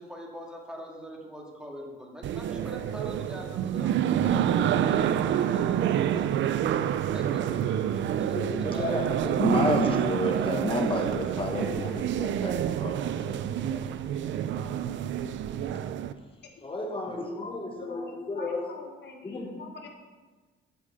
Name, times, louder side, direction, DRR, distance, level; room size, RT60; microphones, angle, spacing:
voice 1, 0.0-3.9 4.2-7.6 7.9-9.5, equal, 5° right, -1 dB, 1.9 m, -42 dB
sound 1, 2.2-16.1, right 10 dB, 70° right, 0.5 m, -28 dB
Wind instrument woodwind instrument, 4.8-12.7, right 3 dB, 30° right, 2.4 m, -47 dB
voice 2, 8.3-14.8 16.6-18.6 19.2-19.6, left 2 dB, 25° left, 2 dB, 1.5 m, -32 dB
voice 3, 17.1-19.9, left 3 dB, 60° left, 3 dB, 1.2 m, -44 dB
8.6 x 5.4 x 6.6 m, 1.3 s
cardioid pair, 90°, 20 cm